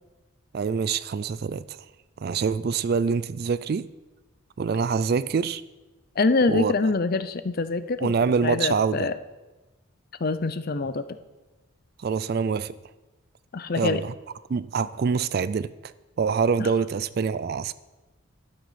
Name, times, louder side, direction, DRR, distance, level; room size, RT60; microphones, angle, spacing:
voice 1, 0.5-1.8 2.2-3.9 4.6-5.6 6.5-6.7 8.0-9.1 12.0-12.7 13.7-14.1 14.5-15.9 16.2-17.7, right 5 dB, 45° right, 17 dB, 0.3 m, -25 dB
voice 2, 6.2-8.1 8.4-9.1 10.2-11.0 13.5-14.0 16.6-16.7, left 3 dB, 45° left, 12 dB, 0.5 m, -25 dB
12.0 x 7.7 x 5.7 m, 1.1 s
head